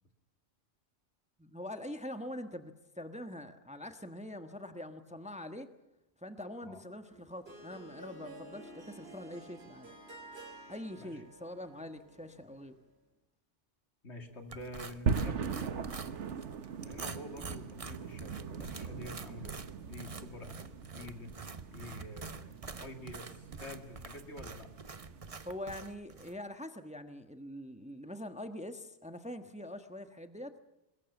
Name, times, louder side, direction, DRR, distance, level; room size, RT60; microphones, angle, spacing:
voice 1, 1.4-5.7 6.2-9.9 10.7-12.7 25.4-30.5, left 1 dB, 5° right, 8 dB, 1.2 m, -44 dB
Harp, 7.1-12.9, right 2 dB, 60° right, 3.3 m, -52 dB
voice 2, 14.0-15.9 16.8-24.7, left 1 dB, 70° left, 5 dB, 2.8 m, -48 dB
sound 1, 14.5-26.4, right 4 dB, 35° right, 0.9 m, -47 dB
sound 2, 15.1-25.3, right 5 dB, 85° right, 1.4 m, -40 dB
22.5 x 21.5 x 7.2 m, 0.92 s
omnidirectional pair, 1.2 m